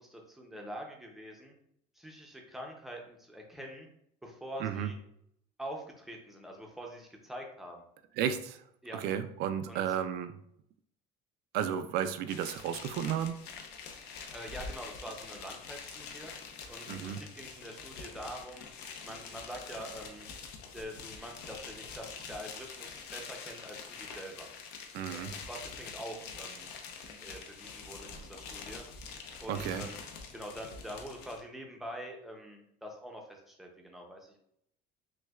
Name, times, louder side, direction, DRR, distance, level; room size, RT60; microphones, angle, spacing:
voice 1, 0.0-1.5 2.0-3.9 4.2-5.0 5.6-7.9 8.8-9.0 9.7-9.8 14.3-16.3 16.7-18.7 19.0-20.3 20.7-24.5 25.1-26.7 27.0-28.8 29.4-30.0 30.3-34.4, equal, ahead, 0 dB, 0.5 m, -45 dB
voice 2, 4.6-4.9 8.2-8.6 8.9-10.3 11.5-13.4 16.9-17.2 24.9-25.3 29.5-29.9, right 9 dB, 60° right, 10 dB, 0.4 m, -33 dB
sound 1, 12.3-31.4, left 5 dB, 65° left, 0.6 m, -45 dB
6.1 x 2.2 x 2.3 m, 0.72 s
cardioid pair, 150°, 18 cm